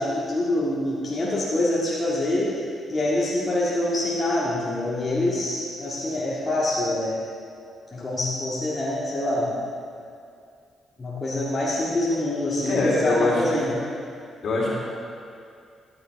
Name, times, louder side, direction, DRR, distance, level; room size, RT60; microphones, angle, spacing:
voice 1, 0.0-7.2 7.9-9.6 11.0-13.8, left 1 dB, 35° left, -7 dB, 2.1 m, -25 dB
voice 2, 12.6-13.7 14.4-14.7, left 2 dB, 55° left, -5 dB, 3.0 m, -23 dB
14.0 x 9.2 x 3.5 m, 2.4 s
hypercardioid pair, 45°, 0 cm